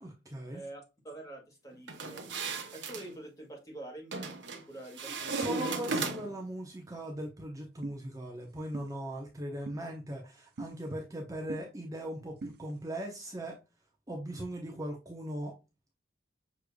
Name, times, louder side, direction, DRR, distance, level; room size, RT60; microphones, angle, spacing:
voice 1, 0.0-0.6 5.2-13.6 14.1-15.5, right 1 dB, 20° right, 0 dB, 0.8 m, -39 dB
voice 2, 0.5-2.2 2.7-5.6, right 1 dB, 20° left, 0 dB, 1.7 m, -46 dB
sound 1, 1.9-3.1 4.1-4.6 5.0-6.5, right 4 dB, 80° right, 0.8 m, -35 dB
sound 2, 7.8-8.0 8.7-8.9 9.7-9.8 10.6-10.7 11.5-11.6 12.4-12.6, right 2 dB, 55° right, 0.6 m, -40 dB
6.2 x 3.3 x 2.2 m, 0.27 s
head